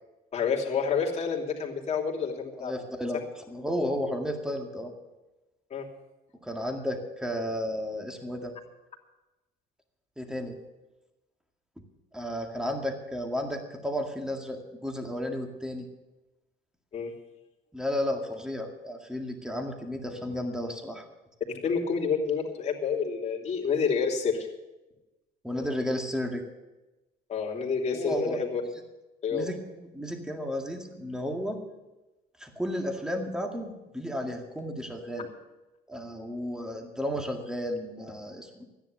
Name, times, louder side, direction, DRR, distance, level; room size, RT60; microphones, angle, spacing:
voice 1, 0.3-2.7 5.7-5.9 16.9-17.1 21.6-24.5 27.3-28.6 29.2-29.5, left 6 dB, 40° left, -1 dB, 3.0 m, -28 dB
voice 2, 2.6-3.2 3.5-4.9 6.4-8.6 10.2-10.6 11.8-11.9 12.1-15.9 17.7-21.1 25.4-26.4 27.9-28.4 29.3-31.6 32.4-35.3 35.9-38.6, equal, 5° right, 3 dB, 2.0 m, -33 dB
13.5 x 10.5 x 6.7 m, 1.0 s
cardioid pair, 110°, 17 cm